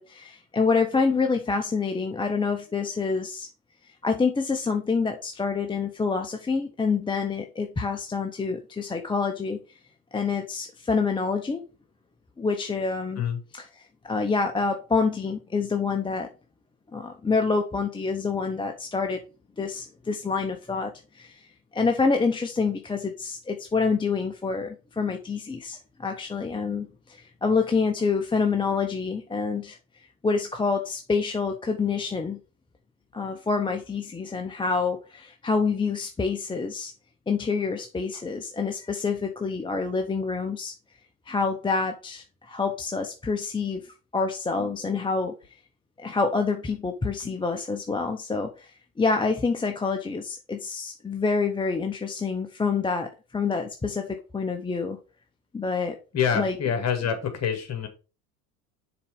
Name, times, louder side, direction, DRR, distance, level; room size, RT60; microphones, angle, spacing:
voice 1, 0.0-3.5 4.0-9.6 10.1-11.6 12.4-13.2 14.0-16.3 16.9-19.2 19.6-21.5 21.7-29.8 30.2-32.4 33.1-36.9 37.3-40.7 41.3-45.4 46.0-48.7 49.0-55.0 55.5-56.0 56.3-56.5, left 4 dB, 10° left, 0.7 m, -27 dB
voice 2, 56.1-57.9, left 7 dB, 35° left, 2.2 m, -27 dB
6.9 x 4.0 x 4.9 m
hypercardioid pair, 75°, 44 cm